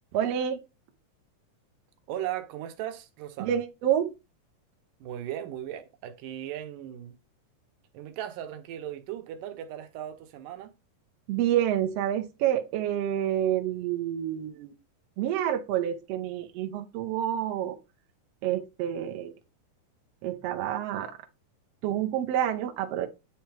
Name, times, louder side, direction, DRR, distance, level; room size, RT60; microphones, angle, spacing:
voice 1, 0.1-0.6 3.4-4.1 11.3-14.7 15.2-17.8 18.4-19.3 20.2-21.1 21.8-23.1, right 10 dB, 70° right, 1.6 m, -28 dB
voice 2, 2.1-3.6 5.0-7.2 7.9-10.7, right 11 dB, 90° right, 2.4 m, -37 dB
9.2 x 3.4 x 3.3 m
omnidirectional pair, 3.7 m